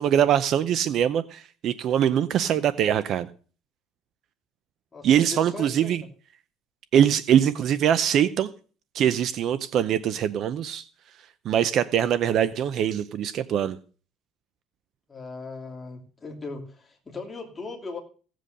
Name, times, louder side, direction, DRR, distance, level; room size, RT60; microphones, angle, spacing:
voice 1, 0.0-3.3 5.0-6.0 6.9-8.5 8.9-10.8 11.4-13.8, right 9 dB, 40° right, 15 dB, 0.6 m, -23 dB
voice 2, 4.9-5.9 15.1-18.0, left 3 dB, 15° left, 0 dB, 2.9 m, -38 dB
16.5 x 7.7 x 6.6 m, 0.40 s
cardioid pair, 175°, 0 cm